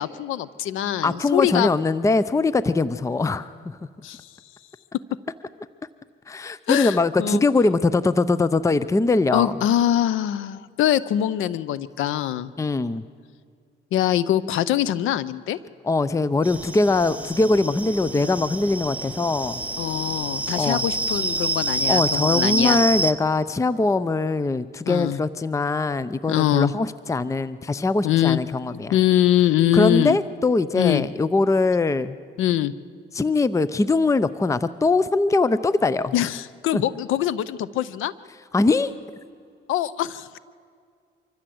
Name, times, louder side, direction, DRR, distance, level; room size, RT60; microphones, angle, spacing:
voice 1, 0.0-1.7 4.0-4.2 6.7-7.4 9.3-12.5 13.9-15.6 19.8-22.8 24.9-25.2 26.3-26.7 28.0-28.4 28.9-30.2 30.7-31.0 32.4-32.7 36.1-38.1 39.7-40.4, left 12 dB, 85° left, 18 dB, 0.7 m, -23 dB
voice 2, 1.0-3.8 6.3-9.6 12.6-13.0 15.8-19.6 20.6-20.8 21.9-29.0 29.7-32.2 33.1-36.1 36.7-36.8 38.5-38.9, left 3 dB, 15° left, 16 dB, 0.6 m, -22 dB
sound 1, 16.4-23.1, right 2 dB, 5° right, 1.0 m, -27 dB
25.0 x 14.5 x 7.8 m, 2.2 s
cardioid pair, 90°, 20 cm